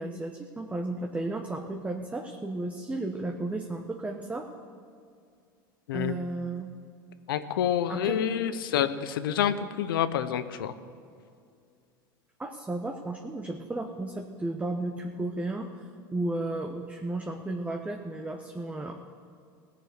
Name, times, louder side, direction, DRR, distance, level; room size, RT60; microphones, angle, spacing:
voice 1, 0.0-4.5 5.9-6.7 7.9-8.2 12.4-18.9, right 2 dB, 10° right, 3 dB, 1.0 m, -34 dB
voice 2, 7.3-10.7, left 9 dB, 80° left, 12 dB, 0.8 m, -28 dB
17.5 x 7.0 x 7.9 m, 2.2 s
hypercardioid pair, 90°, 12 cm